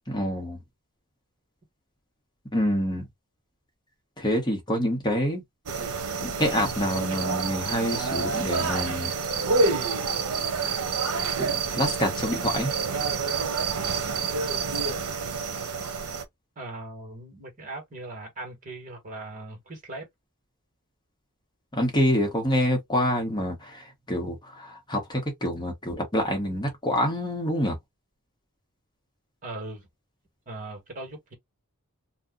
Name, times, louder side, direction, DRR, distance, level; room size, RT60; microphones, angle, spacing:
voice 1, 0.1-0.6 2.5-3.1 4.2-5.4 6.2-9.1 11.4-12.7 21.7-27.8, equal, 20° left, 1.0 m, -27 dB
sound 1, 5.7-16.2, right 4 dB, 80° right, 0.7 m, -28 dB
voice 2, 16.5-20.1 29.4-29.9 30.5-31.3, right 2 dB, 35° right, 1.5 m, -39 dB
2.7 x 2.2 x 3.7 m
head